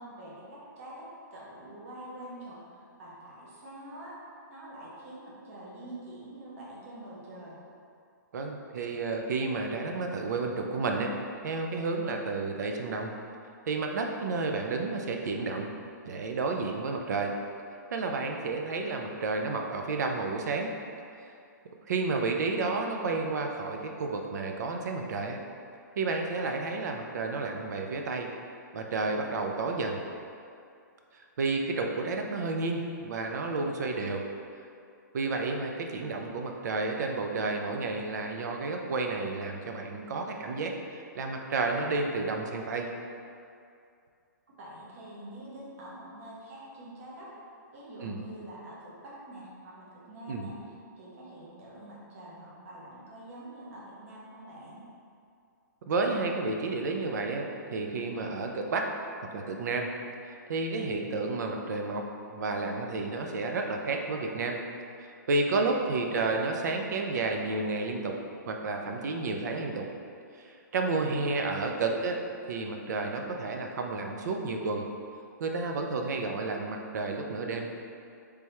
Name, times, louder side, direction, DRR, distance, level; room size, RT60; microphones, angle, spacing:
voice 1, 0.0-4.1 4.5-7.6 44.6-47.3 47.7-54.8 71.0-72.0, right 1 dB, 45° right, -6 dB, 0.9 m, -46 dB
voice 2, 8.3-11.1 11.4-13.1 13.7-15.7 16.1-17.3 17.9-20.7 21.9-25.4 26.0-28.3 28.7-30.0 31.4-34.2 35.1-42.9 48.0-48.2 50.3-50.5 55.9-58.9 59.3-59.9 60.5-62.0 62.3-64.6 65.3-68.1 68.5-69.9 70.4-72.2 72.5-74.8 75.4-77.7, right 3 dB, 60° right, 2 dB, 0.4 m, -31 dB
3.4 x 3.2 x 2.9 m, 2.4 s
hypercardioid pair, 160°, 10 cm